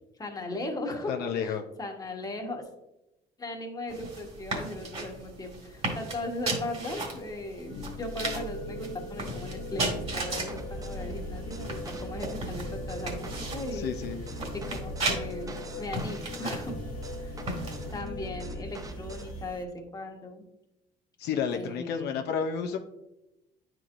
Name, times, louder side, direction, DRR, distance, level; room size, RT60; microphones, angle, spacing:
voice 1, 0.2-2.7 3.4-14.0 14.7-16.8 17.2-17.6 17.9-20.4 21.5-22.1, left 2 dB, 20° left, 2 dB, 1.2 m, -38 dB
voice 2, 1.1-1.6 13.7-14.2 21.2-22.8, left 7 dB, 80° left, 5 dB, 0.6 m, -31 dB
sound 1, 3.9-18.0, right 2 dB, 40° right, 1.9 m, -37 dB
sound 2, 7.7-19.6, left 3 dB, 55° left, 0.9 m, -40 dB
sound 3, 9.8-19.5, right 3 dB, 20° right, 0.5 m, -42 dB
9.5 x 4.5 x 2.5 m, 0.91 s
cardioid pair, 110°, 17 cm